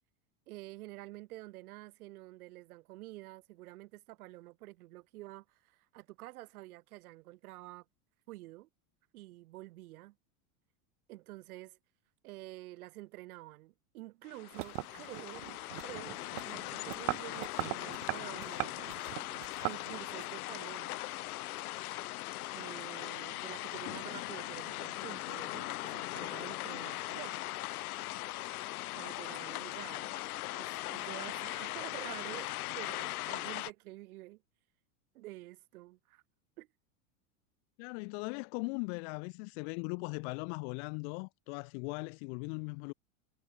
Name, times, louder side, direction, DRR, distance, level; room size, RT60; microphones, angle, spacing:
voice 1, 0.5-7.8 8.3-8.7 9.1-10.2 11.1-11.8 12.2-15.5 15.8-18.7 19.6-21.0 22.5-27.4 28.9-30.2 30.5-34.4 35.1-36.2 36.6-36.7, right 18 dB, 75° right, 2.2 m, -49 dB
sound 1, 14.2-33.7, left 18 dB, 80° left, 1.9 m, -40 dB
sound 2, 14.5-20.2, right 28 dB, 60° right, 0.5 m, -40 dB
voice 2, 37.8-42.9, left 36 dB, 55° left, 0.7 m, -39 dB
supercardioid pair, 130°, 43 cm